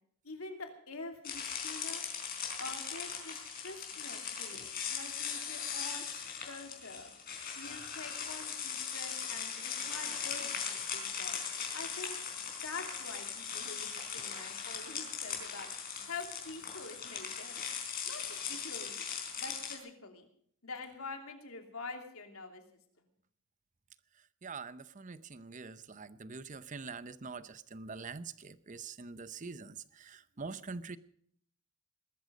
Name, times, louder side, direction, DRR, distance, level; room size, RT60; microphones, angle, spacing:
voice 1, 0.2-2.0 2.6-6.1 6.5-7.1 7.6-11.4 11.7-12.2 12.6-15.7 16.1-17.6 18.0-19.0 19.4-20.3 20.6-22.6, left 3 dB, 75° left, 4 dB, 3.0 m, -46 dB
sound 1, 1.2-19.8, left 7 dB, 45° left, 4.2 m, -39 dB
voice 2, 24.4-31.0, right 4 dB, 35° right, 15 dB, 0.7 m, -44 dB
20.5 x 13.5 x 5.2 m, 0.64 s
head